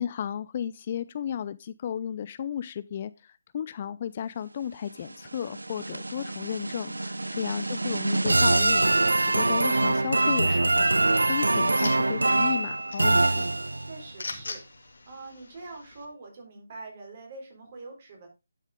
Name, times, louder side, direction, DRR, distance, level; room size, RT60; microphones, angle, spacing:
voice 1, 0.0-8.9 9.3-13.5, left 9 dB, 35° left, 16 dB, 0.4 m, -34 dB
sound 1, 5.1-14.0, right 2 dB, 80° right, 0.4 m, -24 dB
sound 2, 10.7-16.1, left 3 dB, 65° left, 2.0 m, -43 dB
voice 2, 13.7-14.6 15.1-18.3, right 3 dB, 40° right, 1 dB, 4.1 m, -44 dB
11.0 x 6.4 x 3.6 m, 0.26 s
figure-of-eight pair, 150°, 0 cm